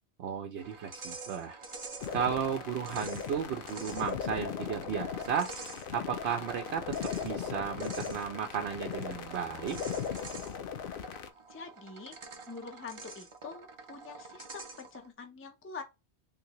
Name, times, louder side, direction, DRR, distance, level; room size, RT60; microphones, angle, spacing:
voice 1, 0.2-1.6 2.1-5.6 5.9-9.8, right 8 dB, 75° right, 0.9 m, -34 dB
sound 1, 0.6-15.1, right 3 dB, 35° right, 0.5 m, -47 dB
sound 2, 2.0-11.3, left 7 dB, 60° left, 0.7 m, -38 dB
voice 2, 11.5-12.1 12.5-15.8, left 5 dB, 20° left, 0.4 m, -45 dB
3.8 x 2.7 x 2.9 m
omnidirectional pair, 1.1 m